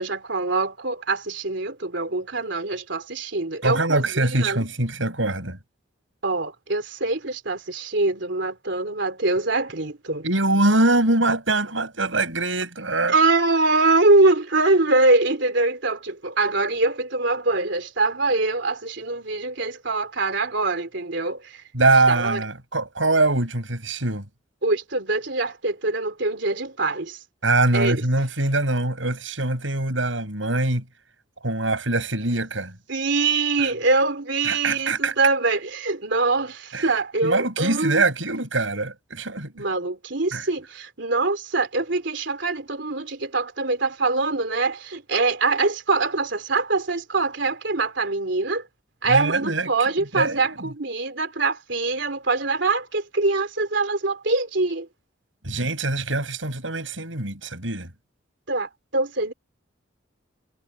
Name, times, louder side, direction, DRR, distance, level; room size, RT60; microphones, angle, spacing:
voice 1, 0.0-4.6 6.2-10.2 13.1-21.6 22.1-22.4 24.6-27.2 27.7-28.0 32.9-38.0 39.5-48.6 49.0-54.9 58.5-59.3, right 3 dB, 65° right, 3.5 m, -23 dB
voice 2, 3.6-5.6 10.2-13.2 21.7-24.3 27.4-30.8 31.4-32.8 34.4-35.1 36.7-36.9 37.2-39.5 40.3-40.5 49.0-49.7 50.1-50.7 55.4-57.9, right 2 dB, 80° right, 7.7 m, -23 dB
head